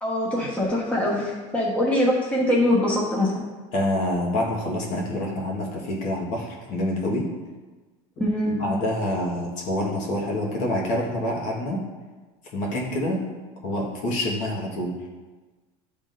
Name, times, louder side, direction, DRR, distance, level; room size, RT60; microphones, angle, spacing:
voice 1, 0.0-3.3 8.2-8.5, left 1 dB, 10° left, -5 dB, 1.2 m, -23 dB
voice 2, 3.7-7.3 8.5-11.8 12.5-13.2 13.6-14.9, left 1 dB, 55° left, -3 dB, 1.4 m, -27 dB
10.5 x 3.7 x 2.5 m, 1.3 s
supercardioid pair, 145°, 15 cm